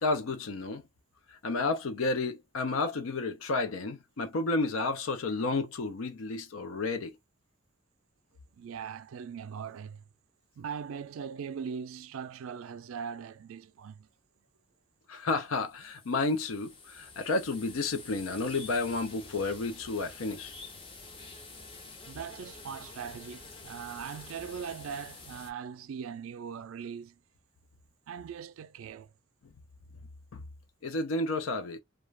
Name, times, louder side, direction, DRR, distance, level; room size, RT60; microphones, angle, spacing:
voice 1, 0.0-0.8 1.3-7.2 15.1-20.5 30.8-31.8, left 3 dB, 80° left, 0.5 m, -31 dB
voice 2, 8.6-10.0 10.6-14.1 22.1-27.2 28.1-29.1, right 7 dB, 80° right, 0.3 m, -40 dB
sound 1, 15.4-25.5, left 3 dB, 25° left, 0.5 m, -48 dB
2.4 x 2.2 x 3.1 m
head